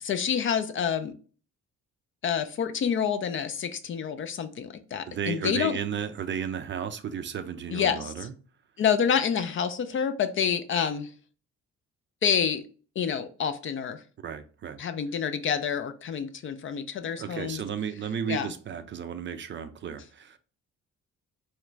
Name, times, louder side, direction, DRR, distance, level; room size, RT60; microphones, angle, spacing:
voice 1, 0.0-1.1 2.2-5.8 7.7-8.3 8.8-11.1 12.2-12.6 13.0-14.0 14.8-17.6 18.3-18.5, left 7 dB, 45° left, 0.4 m, -28 dB
voice 2, 5.1-8.3 14.2-14.8 17.2-20.4, right 8 dB, 40° right, 0.4 m, -34 dB
3.0 x 2.4 x 3.1 m
cardioid pair, 90°, 30 cm